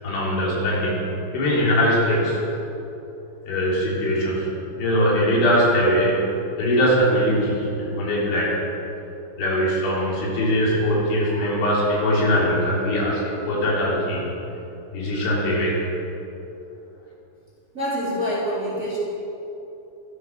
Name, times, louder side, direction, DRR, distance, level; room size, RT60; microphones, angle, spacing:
voice 1, 0.0-2.4 3.5-4.5 4.8-6.2 6.6-8.6 9.4-14.3 14.9-15.8, equal, 75° left, -5 dB, 5.9 m, -21 dB
voice 2, 17.7-19.0, equal, 20° right, -8 dB, 3.6 m, -26 dB
24.5 x 8.2 x 6.4 m, 2.8 s
omnidirectional pair, 5.5 m